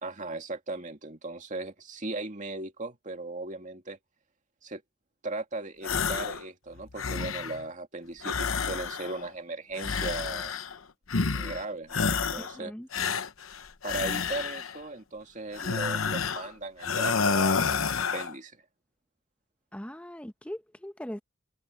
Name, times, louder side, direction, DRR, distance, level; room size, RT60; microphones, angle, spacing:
voice 1, 0.0-4.0 4.6-4.8 5.2-10.5 11.3-12.7 13.8-18.6, right 2 dB, 40° right, 2.2 m, -37 dB
sound 1, 5.8-6.4 6.8-7.6 8.2-9.3 9.8-10.8 11.1-11.6 11.9-12.6 12.9-14.8 15.5-16.5 16.8-18.3, left 5 dB, 80° left, 1.0 m, -29 dB
voice 2, 12.4-12.9 19.7-21.2, equal, 5° left, 1.0 m, -40 dB
head